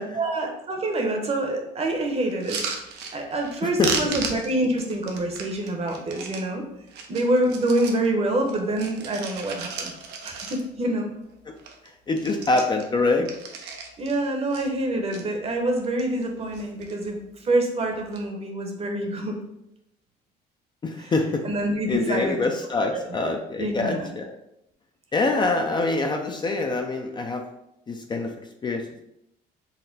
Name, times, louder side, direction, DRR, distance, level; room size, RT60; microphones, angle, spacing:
voice 1, 0.1-2.6 3.1-6.6 7.1-9.9 10.2-11.1 14.0-19.4 21.0-21.1 21.4-22.4 22.9-23.3 23.6-24.1, right 1 dB, 35° right, 3 dB, 0.8 m, -26 dB
sound 1, 2.3-3.6 3.8-6.4 6.9-8.1 8.4-10.9 11.2-11.3 11.6-11.9 12.1-14.2 14.5-15.2 15.8-16.3 16.5-17.1 17.9-18.2, right 5 dB, 85° right, 0.6 m, -35 dB
voice 2, 3.6-4.1 11.5-11.6 12.1-13.3 20.8-21.5 21.9-24.3 25.1-27.4 27.9-28.3 28.6-29.0, left 3 dB, 25° left, 4 dB, 0.4 m, -25 dB
4.1 x 2.1 x 3.9 m, 0.81 s
cardioid pair, 110°, 17 cm